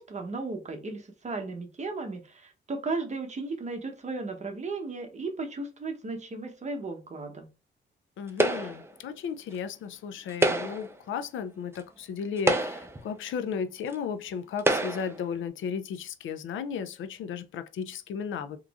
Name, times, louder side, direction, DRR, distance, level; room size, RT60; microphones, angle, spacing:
voice 1, 0.0-7.5, right 3 dB, 35° right, 0.9 m, -35 dB
voice 2, 8.2-18.6, left 7 dB, 80° left, 0.5 m, -35 dB
sound 1, 8.4-8.9 10.3-10.9 11.8-11.9 12.4-13.0 13.9-14.0 14.6-15.2, right 1 dB, 15° right, 0.6 m, -26 dB
3.5 x 3.0 x 2.4 m
cardioid pair, 85°, 20 cm